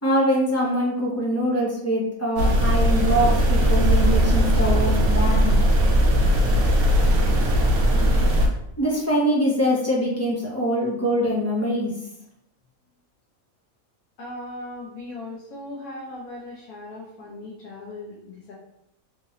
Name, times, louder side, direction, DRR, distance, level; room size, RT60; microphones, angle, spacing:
voice 1, 0.0-5.6 8.8-11.9, equal, 15° left, -4 dB, 0.5 m, -23 dB
sound 1, 2.4-8.5, equal, 70° right, 1.1 m, -19 dB
voice 2, 14.2-18.5, left 2 dB, 85° left, -5 dB, 1.3 m, -38 dB
3.6 x 2.9 x 2.8 m, 0.81 s
omnidirectional pair, 1.5 m